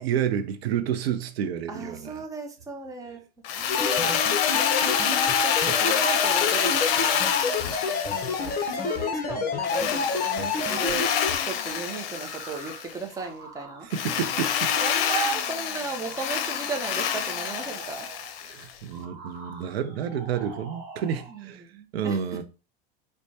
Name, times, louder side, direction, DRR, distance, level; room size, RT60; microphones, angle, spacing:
voice 1, 0.0-2.2 3.6-3.8 13.9-14.7 18.4-21.7 21.9-22.4, right 8 dB, 80° right, 0.6 m, -30 dB
voice 2, 1.7-3.2 3.8-4.2 4.5-7.4 8.1-11.1 11.4-13.9 14.8-18.1 21.3-22.2, right 4 dB, 10° right, 0.7 m, -35 dB
Drill, 3.4-9.0 9.6-12.9 13.9-18.7, left 8 dB, 65° left, 0.6 m, -27 dB
sound 1, 3.7-11.4, left 5 dB, 30° left, 0.7 m, -28 dB
sound 2, 6.6-15.6 16.0-18.5 18.9-21.4, right 3 dB, 30° right, 1.2 m, -47 dB
4.3 x 2.2 x 2.7 m
hypercardioid pair, 110°, 30 cm